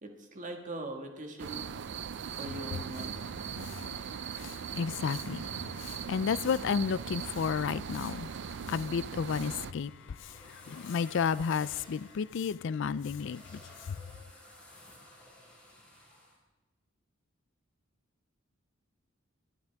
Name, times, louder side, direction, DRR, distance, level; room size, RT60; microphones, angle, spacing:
voice 1, 0.0-1.7 2.4-3.3, right 2 dB, 40° right, 1.8 m, -41 dB
sound 1, 1.4-9.7, right 7 dB, 60° right, 0.4 m, -39 dB
voice 2, 3.6-4.0 4.4-8.3 8.7-13.6 13.9-14.0, left 6 dB, 60° left, 0.4 m, -32 dB
sound 2, 9.5-16.4, left 1 dB, 5° left, 4.6 m, -54 dB
21.5 x 11.5 x 3.5 m
head